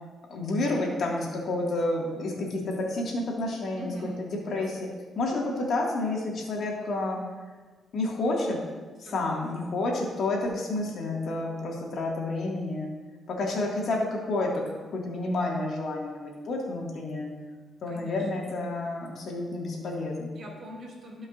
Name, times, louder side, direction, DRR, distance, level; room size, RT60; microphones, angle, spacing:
voice 1, 0.3-4.9 5.2-7.2 7.9-8.6 9.1-12.9 13.3-14.6 14.9-17.3 17.8-20.3, left 2 dB, 65° left, -2 dB, 2.0 m, -30 dB
voice 2, 3.8-4.2 9.0-9.7 17.9-18.5 20.3-21.3, equal, 60° right, -1 dB, 2.4 m, -43 dB
15.5 x 5.4 x 2.6 m, 1.4 s
cardioid pair, 80°, 0 cm